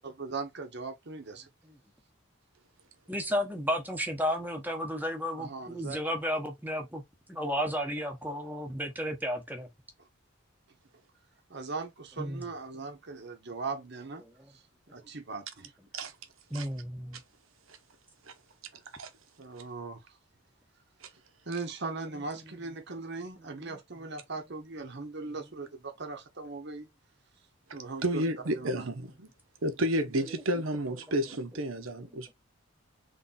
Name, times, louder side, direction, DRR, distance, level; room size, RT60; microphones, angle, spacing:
voice 1, 0.0-1.5 5.4-6.0 11.5-14.2 14.5-14.6 14.9-15.7 18.7-18.8 19.4-20.2 21.5-26.9 27.7-28.2 28.6-28.9, right 3 dB, 55° right, 0.9 m, -39 dB
voice 2, 3.1-7.0 7.3-9.7 12.2-12.5 16.5-17.2 22.1-22.6 23.0-23.8 30.3-30.4 32.1-32.2, equal, 10° right, 1.0 m, -33 dB
voice 3, 28.0-29.3 29.6-32.3, equal, 75° right, 1.0 m, -31 dB
3.7 x 3.3 x 4.1 m
head